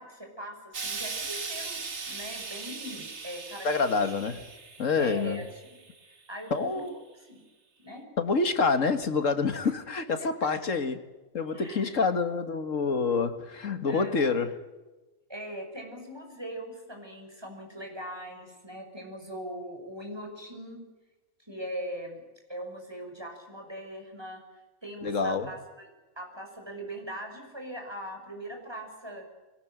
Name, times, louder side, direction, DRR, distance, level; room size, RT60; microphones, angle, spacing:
voice 1, 0.0-1.8 2.1-4.1 5.0-5.4 5.7-5.8 6.0-6.9 7.2-7.4 7.8-8.0 10.2-10.3 11.5-11.9 13.9-14.4 15.3-20.8 21.4-22.2 22.5-24.4 24.8-25.9 26.2-29.3, right 1 dB, 20° right, 6.0 m, -40 dB
Explosion, 0.7-6.0 6.9-7.0, right 4 dB, 55° right, 2.2 m, -39 dB
voice 2, 3.6-4.4 4.8-5.4 6.5-6.9 8.2-11.0 11.3-14.6 25.0-25.5, left 4 dB, 70° left, 2.1 m, -27 dB
22.0 x 19.0 x 9.1 m
omnidirectional pair, 1.4 m